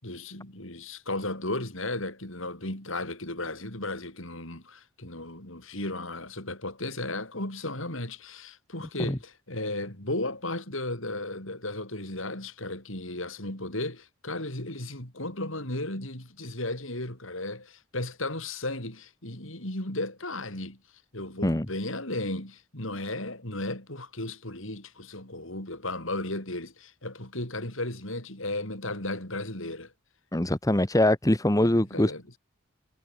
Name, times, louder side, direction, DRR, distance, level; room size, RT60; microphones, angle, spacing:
voice 1, 0.0-20.8 21.1-29.9 31.6-32.2, left 2 dB, 65° left, 6.9 m, -35 dB
voice 2, 30.3-32.4, left 1 dB, 15° left, 1.2 m, -23 dB
head